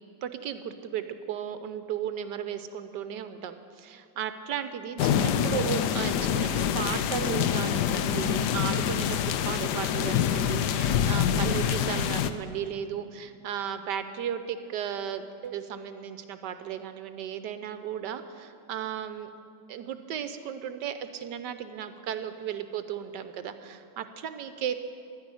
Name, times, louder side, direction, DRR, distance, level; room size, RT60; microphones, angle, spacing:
voice 1, 0.2-19.3 19.7-24.7, right 9 dB, 70° right, 10 dB, 1.2 m, -35 dB
sound 1, 5.0-12.3, left 9 dB, 70° left, 1.1 m, -26 dB
12.0 x 10.0 x 9.7 m, 2.4 s
omnidirectional pair, 2.1 m